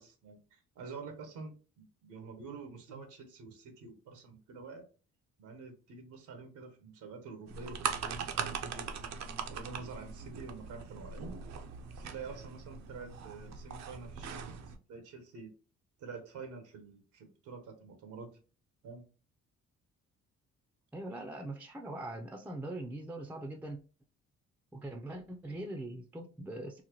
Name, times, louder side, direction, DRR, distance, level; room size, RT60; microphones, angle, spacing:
voice 1, 0.0-4.8 5.4-8.9 9.3-11.3 11.9-15.5 16.0-18.4 18.8-19.0, right 4 dB, 85° right, 1.0 m, -47 dB
sound 1, 7.5-14.8, right 6 dB, 65° right, 0.6 m, -40 dB
voice 2, 20.9-23.8 24.7-26.8, right 1 dB, 5° right, 0.5 m, -41 dB
4.0 x 2.1 x 2.9 m
cardioid pair, 90°, 30 cm